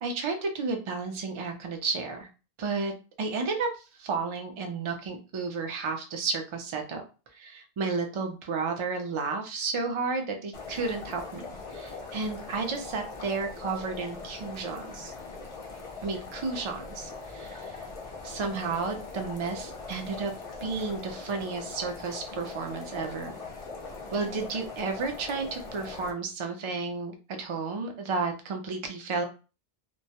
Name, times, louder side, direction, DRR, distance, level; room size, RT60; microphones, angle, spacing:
voice 1, 0.0-2.3 2.6-2.9 3.2-7.0 7.3-15.1 16.0-17.8 18.2-20.3 20.6-23.4 24.1-29.2, right 4 dB, 50° right, 4 dB, 0.3 m, -32 dB
sound 1, 10.5-26.1, left 4 dB, 45° left, 0.6 m, -41 dB
2.2 x 2.0 x 2.7 m, 0.33 s
omnidirectional pair, 1.0 m